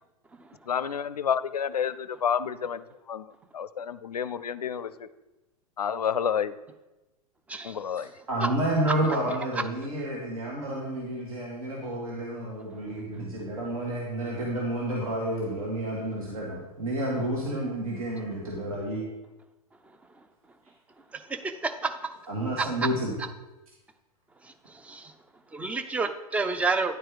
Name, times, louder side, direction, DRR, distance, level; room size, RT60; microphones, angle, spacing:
voice 1, 0.7-5.1 5.8-6.5 7.6-8.1, left 7 dB, 80° left, 15 dB, 0.4 m, -30 dB
voice 2, 8.3-19.0 22.3-23.1, right 1 dB, 65° right, -3 dB, 1.7 m, -30 dB
voice 3, 21.3-21.9 22.6-22.9 24.8-25.1 25.5-26.9, right 3 dB, 5° right, 9 dB, 0.4 m, -29 dB
9.8 x 4.4 x 4.8 m, 1.1 s
figure-of-eight pair, 95°, 20 cm